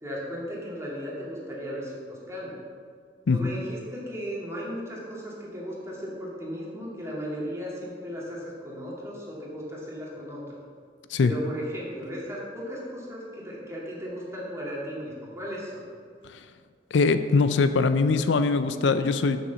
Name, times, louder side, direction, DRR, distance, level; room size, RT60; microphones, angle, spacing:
voice 1, 0.0-2.6 3.3-10.6 11.2-15.9, equal, 15° right, -5 dB, 2.1 m, -36 dB
voice 2, 16.9-19.4, left 4 dB, 80° left, 11 dB, 0.4 m, -22 dB
6.9 x 5.9 x 6.9 m, 2.1 s
head